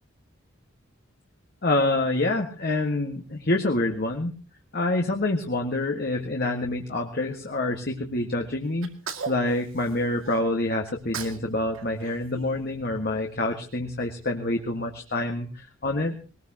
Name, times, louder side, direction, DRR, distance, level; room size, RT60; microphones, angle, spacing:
voice 1, 1.6-4.3 4.7-8.9 9.3-16.1, left 2 dB, 50° left, 2 dB, 1.7 m, -27 dB
Sneeze, 8.8-10.4 10.9-11.5 11.7-13.2, right 5 dB, 85° right, 2.3 m, -38 dB
20.5 x 20.0 x 2.9 m, 0.35 s
head